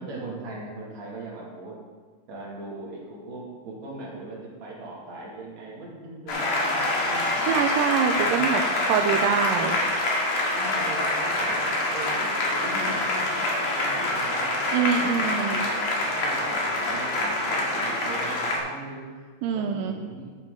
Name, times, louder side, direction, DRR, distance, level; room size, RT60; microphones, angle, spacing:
voice 1, 0.0-1.8 2.3-7.6 8.2-8.5 9.0-9.3 10.4-14.5 15.0-19.3 19.5-20.4, right 2 dB, 50° right, -4 dB, 3.3 m, -39 dB
Applause, 6.3-18.6, left 1 dB, 50° left, 2.5 m, -26 dB
voice 2, 7.4-8.6 8.9-9.8 14.7-15.6 19.4-20.0, right 7 dB, 85° right, 4 dB, 2.0 m, -24 dB
12.5 x 8.8 x 3.8 m, 1.5 s
omnidirectional pair, 4.4 m